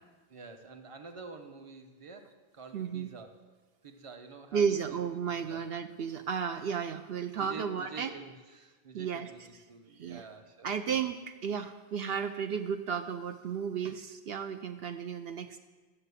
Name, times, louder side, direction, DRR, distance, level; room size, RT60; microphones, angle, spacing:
voice 1, 0.3-3.3 3.8-5.6 7.4-9.4 9.7-10.7, right 4 dB, 35° right, 6 dB, 1.0 m, -48 dB
voice 2, 2.7-3.1 4.5-8.1 8.9-9.3 10.0-10.2 10.6-15.6, right 7 dB, 70° right, 6 dB, 0.9 m, -33 dB
13.0 x 6.7 x 8.3 m, 1.3 s
omnidirectional pair, 1.1 m